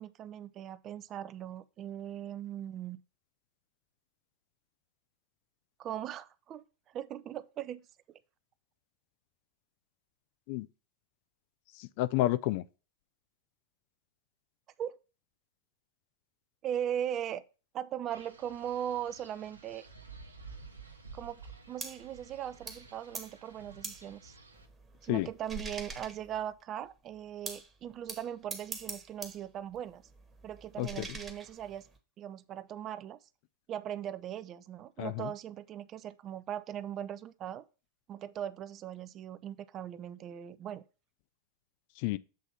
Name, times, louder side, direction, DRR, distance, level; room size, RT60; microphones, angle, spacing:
voice 1, 0.0-3.0 5.8-8.2 14.8-15.0 16.6-17.4 17.7-19.9 21.1-21.4 21.7-24.3 25.0-30.0 30.4-31.9 32.2-33.2 33.7-37.6 38.1-40.8, right 10 dB, 30° right, 0.5 m, -39 dB
voice 2, 11.8-12.6 25.1-25.3 30.8-31.0 35.0-35.3 42.0-42.2, left 16 dB, 45° left, 0.3 m, -30 dB
Wind, 18.1-24.7, right 4 dB, 80° right, 0.9 m, -52 dB
sound 1, 21.8-22.1 22.7-22.9 23.1-23.4 23.8-24.1 24.5-26.6 27.5-27.7 28.1-29.4 29.7-32.0, right 3 dB, 15° right, 1.2 m, -44 dB
7.4 x 3.5 x 5.6 m
figure-of-eight pair, 90°, 0 cm